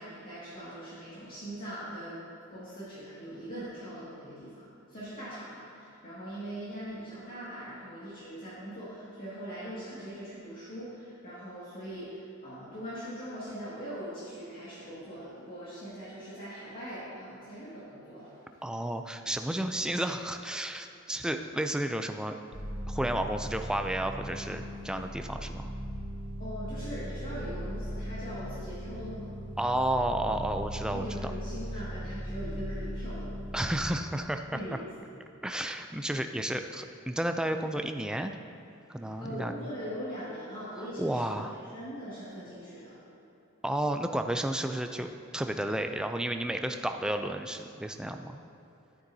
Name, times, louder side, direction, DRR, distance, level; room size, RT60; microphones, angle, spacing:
voice 1, 0.0-2.2 2.5-18.4 26.4-29.3 30.9-33.3 34.5-34.8 39.0-43.0, equal, 45° left, -11 dB, 2.1 m, -41 dB
voice 2, 18.6-22.3 22.9-25.7 29.6-31.3 33.5-34.8 35.4-38.4 38.9-39.7 41.0-41.5 43.6-48.4, right 1 dB, 5° right, 6 dB, 0.3 m, -32 dB
sound 1, 22.5-33.9, equal, 55° right, 1.4 m, -38 dB
11.5 x 9.1 x 2.8 m, 2.9 s
head